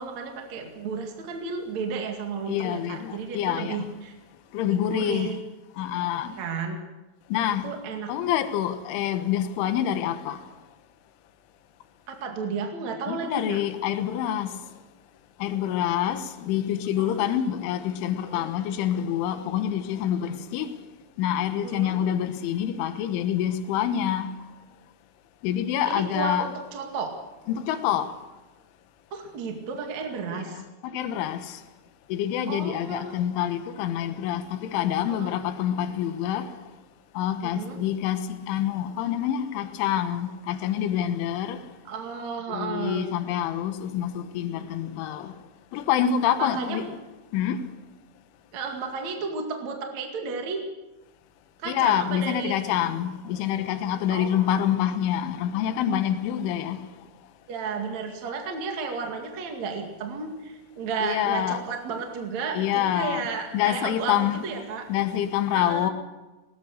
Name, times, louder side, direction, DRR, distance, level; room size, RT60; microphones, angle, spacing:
voice 1, 0.0-4.1 4.8-5.4 6.4-6.8 7.6-8.1 12.1-13.6 17.0-17.4 18.3-18.5 21.6-22.0 25.8-27.1 29.1-30.6 32.5-33.2 35.1-35.3 37.4-37.8 41.8-43.1 46.4-46.9 48.5-50.7 51.6-52.6 54.1-54.5 57.5-64.9 65.5-65.9, right 5 dB, 45° right, 2.7 m, -33 dB
voice 2, 2.5-3.9 4.5-5.3 5.8-6.4 7.3-7.7 8.1-10.4 13.1-14.5 15.4-20.7 21.2-24.3 25.4-26.5 27.5-28.1 30.3-31.6 32.1-36.5 37.2-41.6 42.5-45.3 45.7-46.8 47.3-47.6 51.7-56.8 61.0-61.6 62.5-63.3 63.5-64.4 64.9-65.9, left 10 dB, 80° left, 3.7 m, -26 dB
21.5 x 18.5 x 6.7 m
omnidirectional pair, 5.6 m